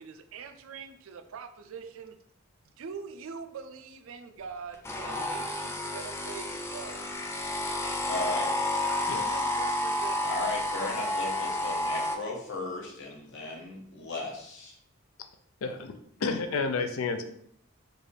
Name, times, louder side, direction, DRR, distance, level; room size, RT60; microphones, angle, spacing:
voice 1, 0.0-2.2 2.6-7.1 7.8-8.0 8.8-10.3, right 5 dB, 75° right, 8 dB, 0.4 m, -43 dB
sound 1, 4.8-12.2, left 1 dB, 15° left, 0.3 m, -31 dB
voice 2, 8.0-8.5 10.2-14.8, left 2 dB, 65° left, -1 dB, 1.1 m, -36 dB
voice 3, 15.6-17.2, left 4 dB, 85° left, 7 dB, 0.4 m, -31 dB
4.8 x 2.5 x 3.2 m, 0.68 s
head